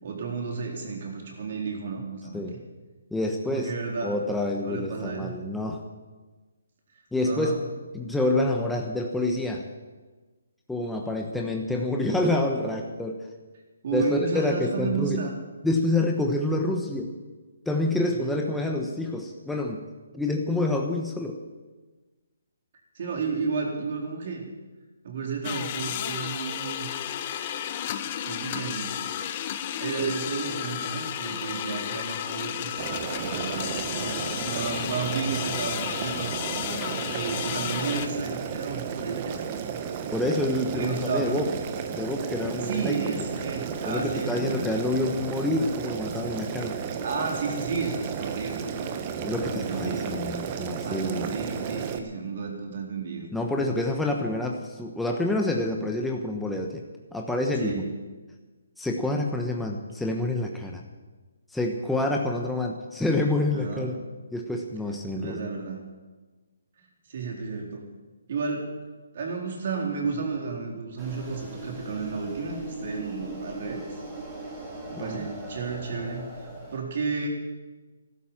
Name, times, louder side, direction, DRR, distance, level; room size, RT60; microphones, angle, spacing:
voice 1, 0.0-2.4 3.5-4.2 4.6-5.4 7.2-7.6 13.8-15.4 18.1-18.4 22.9-24.5 25.0-26.9 28.2-29.0 29.8-32.7 33.1-36.3 37.1-39.4 40.7-41.3 42.6-44.7 47.0-49.2 49.5-50.1 50.8-53.3 54.1-54.3 57.6-57.9 63.5-63.9 65.2-65.9 67.1-67.9 68.3-68.7 69.1-73.8 74.9-76.3 76.7-77.3, right 5 dB, 50° right, 1 dB, 4.0 m, -32 dB
voice 2, 3.1-3.7 4.0-5.8 7.1-7.6 7.9-9.6 10.7-13.2 13.9-15.2 15.6-17.1 17.7-19.8 20.1-21.4 40.1-41.5 41.9-43.1 43.8-46.8 49.2-51.3 53.3-56.8 57.1-57.8 58.8-60.8 61.5-64.0 64.3-65.5 74.9-75.2, left 2 dB, 5° left, 1 dB, 1.2 m, -27 dB
sound 1, 25.4-38.1, left 10 dB, 35° left, 0.9 m, -33 dB
Boiling, 32.8-52.0, right 7 dB, 30° right, 1.3 m, -33 dB
sound 2, 71.0-76.8, right 2 dB, 10° right, 3.4 m, -39 dB
14.5 x 12.0 x 7.3 m, 1.3 s
hypercardioid pair, 155°, 0 cm